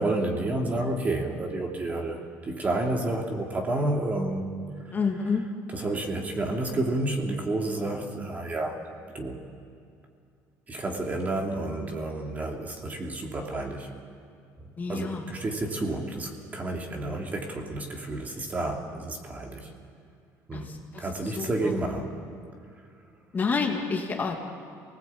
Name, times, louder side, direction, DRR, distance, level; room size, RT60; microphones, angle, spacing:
voice 1, 0.0-4.5 5.7-8.8 9.1-9.4 10.7-13.9 14.9-19.7 20.5-20.7 21.0-22.1, right 2 dB, 20° right, 1 dB, 3.0 m, -30 dB
voice 2, 4.9-5.5 14.8-15.3 20.5-21.7 23.3-24.5, left 5 dB, 25° left, 1 dB, 2.3 m, -29 dB
28.0 x 19.5 x 8.7 m, 2.4 s
cardioid pair, 145°, 7 cm